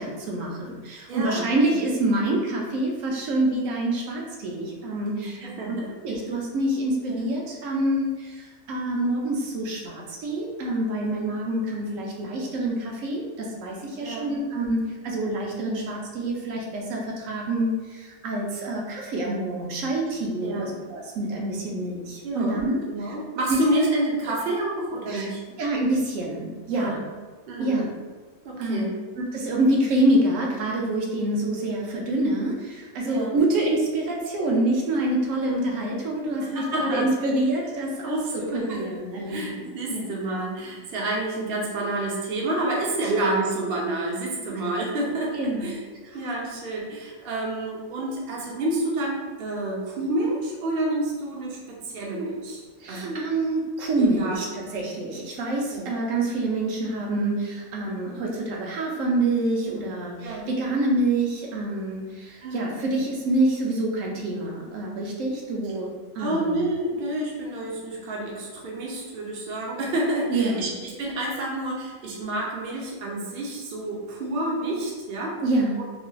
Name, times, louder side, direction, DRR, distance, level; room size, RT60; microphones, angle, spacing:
voice 1, 0.0-5.8 6.0-23.1 23.5-23.9 25.1-25.3 25.6-27.0 27.6-27.9 28.6-28.9 29.2-40.1 43.0-43.2 45.3-45.7 52.8-66.6 70.3-70.7 75.4-75.8, right 1 dB, 85° right, -1 dB, 1.0 m, -26 dB
voice 2, 1.1-1.8 5.2-5.9 7.1-7.3 14.0-14.3 20.4-20.7 22.2-22.6 22.9-25.4 26.7-27.0 27.5-27.9 28.4-28.9 33.0-33.4 36.4-37.1 38.0-45.8 46.1-53.3 54.0-54.5 55.7-55.9 60.2-60.5 62.4-62.7 66.2-75.3 75.8-75.9, right 1 dB, 55° right, -3 dB, 0.7 m, -29 dB
3.1 x 2.5 x 2.3 m, 1.3 s
omnidirectional pair, 1.3 m